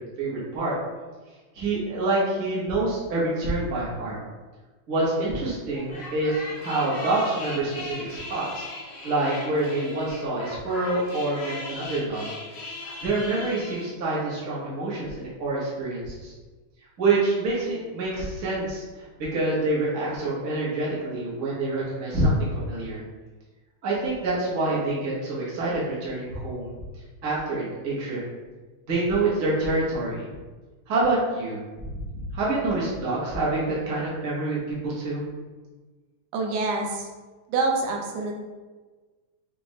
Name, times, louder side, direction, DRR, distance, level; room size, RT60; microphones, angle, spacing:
voice 1, 0.2-0.7 1.5-4.2 4.9-8.7 9.0-12.3 13.0-16.3 17.0-23.0 23.8-26.7 27.2-28.2 28.9-30.3 30.9-32.0 32.3-35.2, right 2 dB, 60° right, -7 dB, 0.8 m, -26 dB
sound 1, 5.7-13.9, left 2 dB, 75° left, 1.0 m, -38 dB
voice 2, 36.3-37.1 37.5-38.3, right 3 dB, 80° right, 1 dB, 2.1 m, -26 dB
5.9 x 2.5 x 3.1 m, 1.3 s
omnidirectional pair, 3.5 m